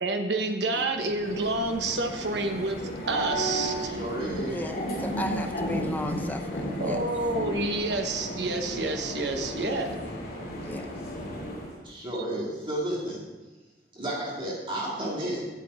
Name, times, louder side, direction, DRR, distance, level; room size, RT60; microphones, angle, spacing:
voice 1, 0.0-3.9 6.8-9.9, right 2 dB, 75° right, 5 dB, 1.0 m, -29 dB
sound 1, 0.9-11.8, equal, 55° left, 2.6 m, -34 dB
voice 2, 3.8-4.6 11.8-13.2 13.9-15.5, right 1 dB, 30° right, -5 dB, 2.3 m, -32 dB
voice 3, 4.5-7.0 9.5-9.8 10.6-10.9, left 1 dB, 10° left, 5 dB, 0.6 m, -36 dB
8.3 x 8.1 x 4.8 m, 1.2 s
head